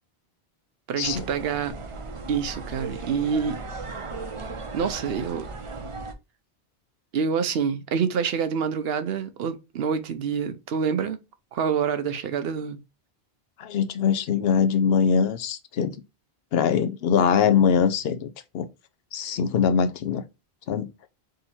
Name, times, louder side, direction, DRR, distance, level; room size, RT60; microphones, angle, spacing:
voice 1, 0.9-1.7 2.3-3.6 4.7-5.5 7.1-11.2 11.5-12.8, right 6 dB, 75° right, 0.8 m, -27 dB
sound 1, 1.0-6.1, right 3 dB, 35° right, 0.6 m, -36 dB
voice 2, 13.6-16.0 16.5-18.3 18.5-18.7 19.1-20.2 20.7-20.9, left 7 dB, 75° left, 0.8 m, -22 dB
3.8 x 2.8 x 4.2 m
omnidirectional pair, 1.0 m